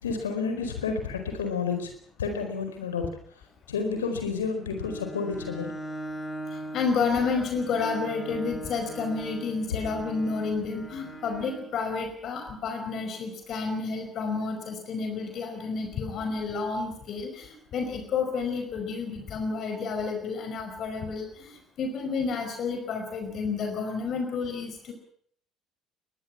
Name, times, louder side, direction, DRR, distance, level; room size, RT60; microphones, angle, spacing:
voice 1, 0.0-1.9 2.2-3.0 3.7-5.7, left 5 dB, 75° left, 6 dB, 4.6 m, -30 dB
Bowed string instrument, 4.7-11.7, right 1 dB, 20° left, 5.7 m, -40 dB
voice 2, 6.5-24.9, left 4 dB, 50° left, 5 dB, 5.0 m, -30 dB
22.5 x 22.0 x 5.9 m, 0.62 s
figure-of-eight pair, 55°, 0 cm